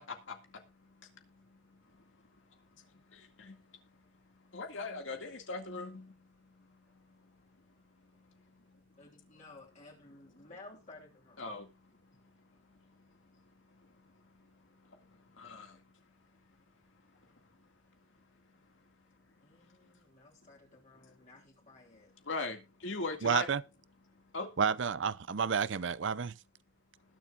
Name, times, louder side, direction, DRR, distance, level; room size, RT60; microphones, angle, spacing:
voice 1, 0.0-2.1 2.8-3.7 3.9-4.0 4.4-9.1 11.4-12.1 12.4-15.8 17.1-17.2 19.6-19.7 21.0-21.2 22.2-23.5 24.1-24.5, left 3 dB, 80° left, 2.1 m, -44 dB
voice 2, 9.0-11.4 19.4-22.1, left 2 dB, 40° left, 3.3 m, -55 dB
voice 3, 23.2-23.6 24.6-26.4, right 6 dB, 70° right, 0.5 m, -30 dB
20.0 x 7.3 x 2.5 m
head